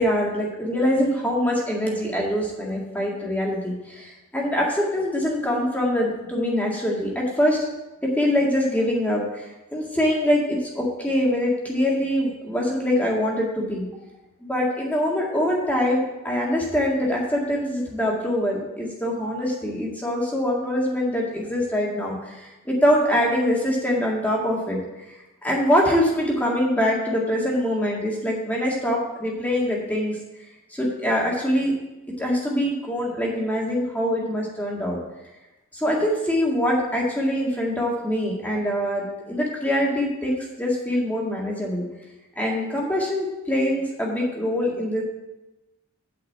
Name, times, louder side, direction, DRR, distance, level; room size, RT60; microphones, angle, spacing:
voice 1, 0.0-7.6 8.2-13.9 14.4-24.8 25.4-30.2 30.7-31.7 32.2-35.0 35.7-41.8 42.4-45.0, equal, 5° left, -3 dB, 1.9 m, -24 dB
8.5 x 5.7 x 7.5 m, 1.0 s
head